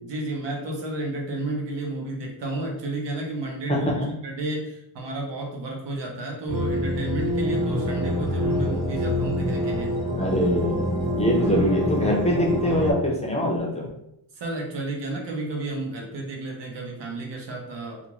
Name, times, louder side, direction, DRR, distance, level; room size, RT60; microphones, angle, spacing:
voice 1, 0.0-3.9 4.2-9.9 14.3-18.0, right 2 dB, 80° right, 0 dB, 0.9 m, -32 dB
sound 1, 6.5-12.9, equal, 60° right, 1.1 m, -26 dB
voice 2, 10.2-10.9 11.1-13.9, equal, 15° left, -2 dB, 0.5 m, -23 dB
2.5 x 2.4 x 3.0 m, 0.80 s
wide cardioid pair, 130°, 42 cm